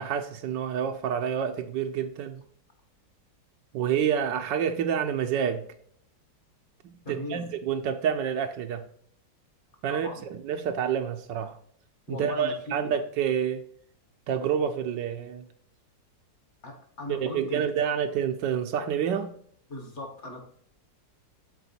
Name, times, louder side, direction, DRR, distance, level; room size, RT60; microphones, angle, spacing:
voice 1, 0.0-2.4 3.7-5.7 6.8-8.9 9.8-11.6 12.1-13.6 14.3-15.4 17.1-19.3, right 8 dB, 75° right, 1.3 m, -28 dB
voice 2, 7.0-7.5 9.9-10.2 12.1-13.0 16.6-17.7 19.7-20.4, left 1 dB, 40° left, 1.6 m, -38 dB
6.9 x 4.4 x 4.3 m
omnidirectional pair, 2.0 m